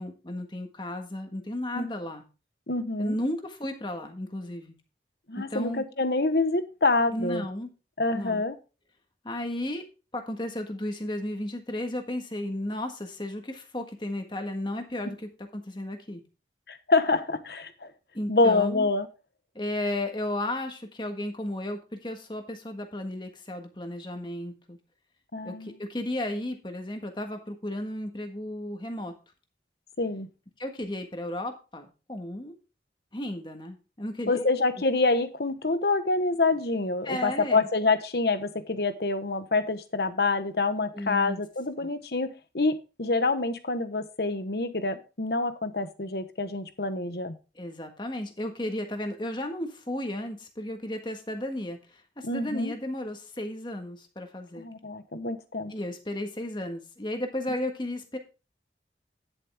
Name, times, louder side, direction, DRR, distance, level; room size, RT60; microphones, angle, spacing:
voice 1, 0.0-2.2 3.0-4.7 5.4-5.8 7.1-7.7 8.1-8.4 9.2-9.8 10.1-16.2 18.1-18.9 19.5-24.8 25.4-29.1 30.6-32.5 33.1-34.5 37.0-37.7 40.9-41.4 41.8-41.9 47.5-54.7 55.7-58.2, left 1 dB, 25° left, 5 dB, 1.6 m, -34 dB
voice 2, 2.7-3.2 5.3-7.4 8.0-8.6 16.7-17.9 18.3-19.1 25.3-25.7 30.0-30.3 34.3-47.4 52.2-52.7 54.6-55.7, left 3 dB, 65° left, 10 dB, 1.1 m, -26 dB
10.5 x 7.4 x 3.5 m, 0.31 s
head